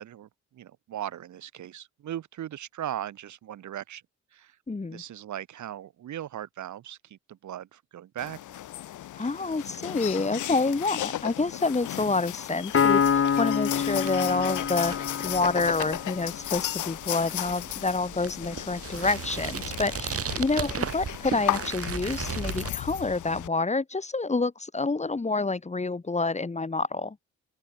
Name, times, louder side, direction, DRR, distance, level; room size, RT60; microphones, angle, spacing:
voice 1, 0.0-4.0 4.3-4.6 4.9-8.4, right 11 dB, 70° right, 7.7 m, -38 dB
voice 2, 4.7-5.0 9.1-14.9 15.2-27.2, left 3 dB, 20° left, 4.6 m, -28 dB
sound 1, 8.2-23.5, left 13 dB, 80° left, 3.1 m, -35 dB
Piano, 12.7-16.3, left 7 dB, 45° left, 4.0 m, -26 dB
sound 2, 12.7-22.7, right 7 dB, 50° right, 7.3 m, -37 dB
open air
cardioid pair, 90°, 30 cm